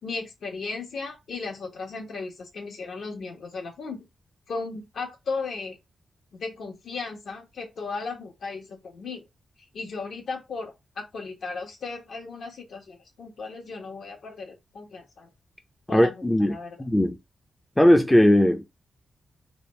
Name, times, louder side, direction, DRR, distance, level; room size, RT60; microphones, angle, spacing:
voice 1, 0.0-4.0 4.5-5.8 6.3-9.2 9.7-15.3 15.9-16.8, left 4 dB, 65° left, 1.3 m, -36 dB
voice 2, 15.9-17.2 17.8-18.6, left 1 dB, 10° left, 0.4 m, -19 dB
3.4 x 2.3 x 4.3 m
wide cardioid pair, 165°, 0 cm